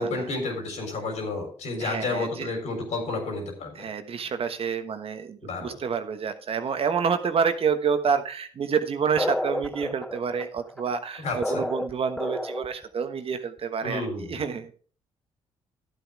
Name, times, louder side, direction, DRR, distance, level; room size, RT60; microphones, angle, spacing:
voice 1, 0.0-3.9 5.4-5.8 11.2-11.6 13.8-14.4, left 2 dB, 70° left, 3 dB, 3.9 m, -31 dB
voice 2, 1.8-2.5 3.7-14.7, right 6 dB, 55° right, 9 dB, 1.2 m, -28 dB
sound 1, 9.2-12.9, left 1 dB, 5° left, 0.4 m, -31 dB
12.0 x 8.1 x 3.4 m, 0.41 s
supercardioid pair, 65°, 12 cm